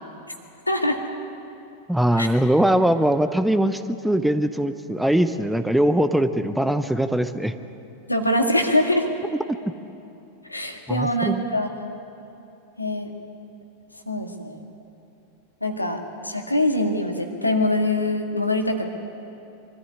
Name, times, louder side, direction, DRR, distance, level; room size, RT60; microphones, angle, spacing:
voice 1, 0.7-1.0 2.2-2.3 8.1-9.1 10.5-11.9 12.8-13.1 14.1-14.6 15.6-18.8, left 1 dB, 85° left, 3 dB, 2.1 m, -23 dB
voice 2, 1.9-7.5 10.9-11.4, right 1 dB, 5° right, 10 dB, 0.8 m, -21 dB
24.0 x 14.0 x 9.8 m, 2.8 s
figure-of-eight pair, 90°, 0 cm